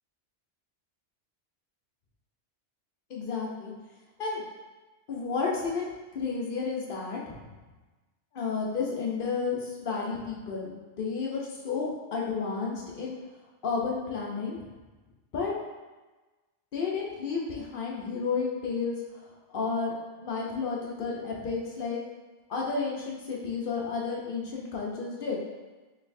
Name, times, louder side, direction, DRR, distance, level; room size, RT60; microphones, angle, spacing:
voice 1, 3.1-3.7 4.2-4.4 5.1-7.5 8.3-13.2 13.6-14.6 15.3-15.5 16.7-22.0 22.5-25.4, left 4 dB, 55° left, -3 dB, 0.8 m, -32 dB
4.1 x 3.2 x 2.6 m, 1.2 s
omnidirectional pair, 1.3 m